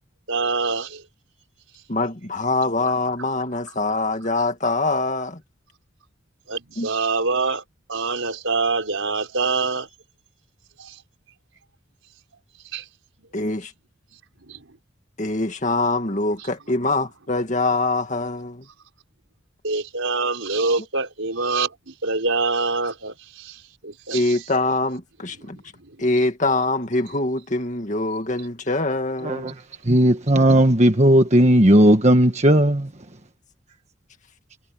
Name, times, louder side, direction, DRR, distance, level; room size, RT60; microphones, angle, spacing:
voice 1, 0.3-1.0 6.5-7.6 7.9-9.9 10.8-11.0 12.7-12.8 14.5-14.6 19.6-24.4 25.4-25.5, right 3 dB, 85° right, 4.5 m, -25 dB
voice 2, 1.9-5.4 6.8-6.9 13.3-13.7 15.2-18.7 24.1-25.6 26.0-29.5, left 2 dB, 40° left, 2.1 m, -24 dB
voice 3, 29.2-29.5 29.8-32.9, right 1 dB, 35° right, 1.3 m, -16 dB
head